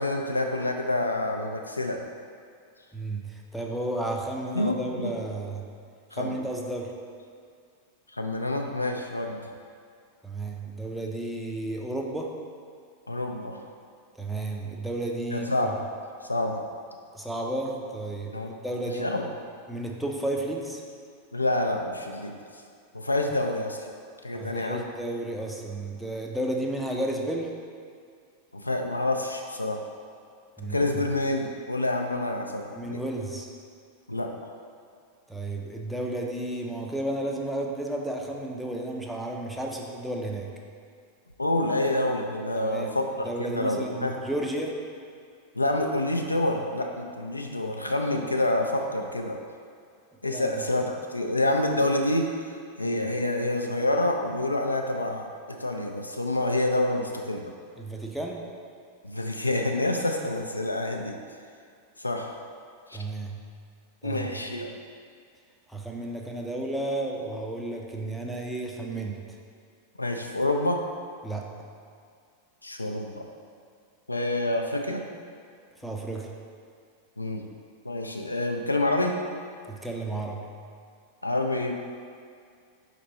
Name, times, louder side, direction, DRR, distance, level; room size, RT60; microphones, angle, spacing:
voice 1, 0.0-2.0 4.5-5.1 6.1-6.4 8.1-9.4 13.1-13.6 15.3-15.8 16.2-16.6 18.3-18.6 19.0-19.2 21.3-22.3 22.9-23.8 24.2-24.8 28.5-29.8 30.7-33.0 34.1-34.3 41.4-44.2 45.5-49.4 50.2-52.3 52.8-57.5 59.0-61.2 62.0-62.4 62.9-63.0 64.0-64.8 70.0-70.8 72.6-73.2 74.1-75.0 77.2-77.4 77.8-79.2 81.2-81.7, left 1 dB, 85° left, 3 dB, 0.3 m, -27 dB
voice 2, 2.9-5.7 6.1-6.9 10.2-12.4 14.2-15.8 17.1-19.1 19.7-20.8 24.3-27.5 30.6-31.1 32.7-33.5 35.3-40.5 42.6-43.0 43.2-44.8 50.3-50.6 52.8-53.1 57.8-58.4 62.9-63.4 64.0-64.4 65.7-69.4 71.2-71.6 75.8-76.3 79.7-80.5, right 1 dB, ahead, 0 dB, 0.5 m, -33 dB
4.3 x 3.0 x 4.0 m, 2.3 s
figure-of-eight pair, 90°, 0 cm